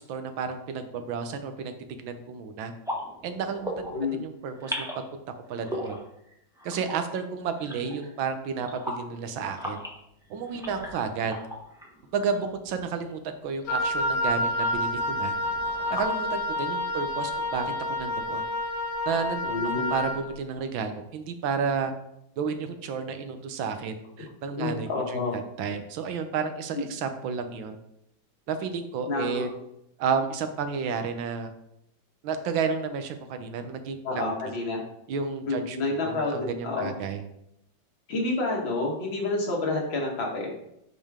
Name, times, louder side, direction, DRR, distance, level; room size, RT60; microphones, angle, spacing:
voice 1, 0.1-1.7 2.0-2.7 3.2-3.9 4.2-4.9 5.5-6.0 6.6-9.8 10.3-11.3 12.1-15.3 15.9-17.6 18.0-18.4 19.1-21.9 22.4-27.8 28.5-29.5 30.0-31.5 32.2-34.3 35.1-35.8 36.1-37.2, right 5 dB, 85° right, 7 dB, 1.6 m, -31 dB
sound 1, 2.8-4.2 4.4-5.1 5.4-8.3 8.6-13.4 14.0-16.1, left 1 dB, 5° right, 0.7 m, -39 dB
Wind instrument woodwind instrument, 13.7-20.2, left 1 dB, 65° left, 1.5 m, -29 dB
voice 2, 19.4-19.9 24.6-25.4 29.1-29.4 34.0-34.8 35.5-36.9 38.1-40.5, left 3 dB, 85° left, -1 dB, 2.4 m, -29 dB
8.5 x 5.3 x 3.6 m, 0.80 s
omnidirectional pair, 2.1 m